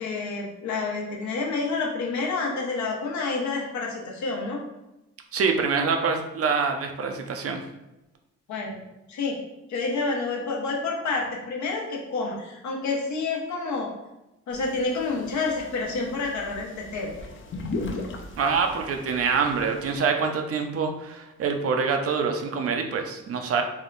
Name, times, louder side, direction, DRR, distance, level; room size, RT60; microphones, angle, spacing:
voice 1, 0.0-4.6 8.5-8.8 9.1-9.4 9.7-13.9 14.5-17.1, left 3 dB, 70° left, -1 dB, 1.0 m, -29 dB
voice 2, 5.3-7.6 18.4-23.6, right 5 dB, 50° right, 4 dB, 0.6 m, -25 dB
sound 1, 14.5-20.0, left 2 dB, 40° left, 0.6 m, -38 dB
3.5 x 2.2 x 3.9 m, 0.96 s
cardioid pair, 90°, 30 cm